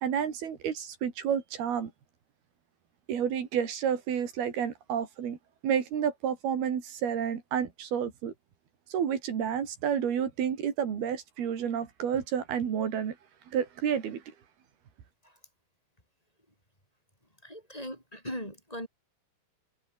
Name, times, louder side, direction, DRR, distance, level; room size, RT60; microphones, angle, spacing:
voice 1, 0.0-1.9 3.1-5.4 5.6-8.3 8.9-13.2 13.5-14.2, right 8 dB, 65° right, 4.9 m, -30 dB
voice 2, 17.4-18.9, equal, 10° left, 7.1 m, -39 dB
omnidirectional pair, 4.9 m